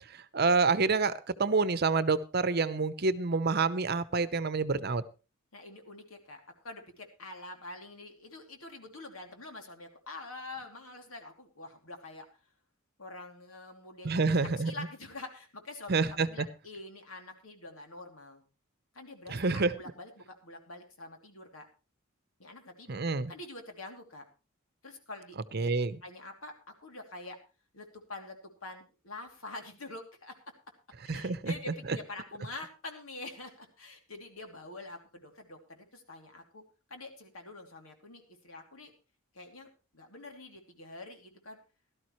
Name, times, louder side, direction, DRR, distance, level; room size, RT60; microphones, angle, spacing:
voice 1, 0.1-5.0 14.0-14.7 15.9-16.3 19.3-19.7 22.9-23.3 25.5-26.0 31.1-31.5, right 4 dB, 50° right, 14 dB, 0.8 m, -28 dB
voice 2, 5.5-12.3 13.0-18.4 18.9-21.7 22.4-23.0 23.3-24.3 24.8-25.7 26.0-26.5 26.8-27.4 27.7-30.3 31.0-36.6 36.9-38.9 39.3-41.6, left 2 dB, 90° left, 4 dB, 2.8 m, -46 dB
17.5 x 12.5 x 3.1 m, 0.32 s
head